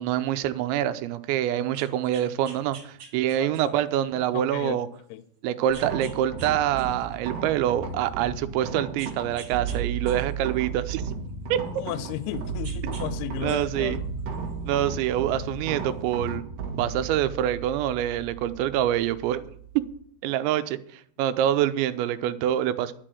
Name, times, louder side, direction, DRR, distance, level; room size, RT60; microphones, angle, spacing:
voice 1, 0.0-4.9 5.4-11.2 11.5-11.7 13.4-14.0 14.7-16.4 16.8-19.4 19.8-19.9 20.2-22.9, right 11 dB, 90° right, 3.0 m, -26 dB
sound 1, 1.6-3.9 4.5-4.6 5.7-6.5 6.8-8.1 9.0-9.8 10.1-12.3 12.6-13.1 13.4-14.8 15.8-15.9, right 5 dB, 35° right, 2.7 m, -47 dB
voice 2, 3.4-3.8 4.3-4.8 5.1-5.2 11.8-14.1, left 11 dB, 80° left, 2.6 m, -34 dB
sound 2, 5.7-20.0, right 5 dB, 60° right, 2.9 m, -34 dB
11.0 x 6.6 x 7.5 m
omnidirectional pair, 5.1 m